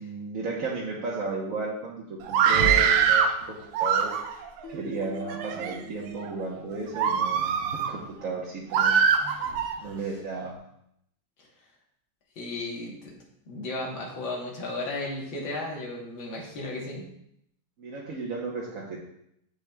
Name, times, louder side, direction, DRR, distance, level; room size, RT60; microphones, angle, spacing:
voice 1, 0.0-4.4 4.7-9.4 9.8-10.5 17.8-19.0, right 3 dB, 50° right, -5 dB, 1.3 m, -34 dB
Screaming, 2.2-3.3 3.7-4.5 5.2-5.7 6.3-6.4 6.9-7.9 8.7-9.7, right 7 dB, 90° right, 1.4 m, -23 dB
Keyboard (musical), 4.6-7.5, right 2 dB, 40° left, 1.8 m, -45 dB
voice 2, 12.4-13.1 13.5-17.1, left 2 dB, 85° left, -2 dB, 2.1 m, -34 dB
8.0 x 7.0 x 2.3 m, 0.76 s
omnidirectional pair, 2.0 m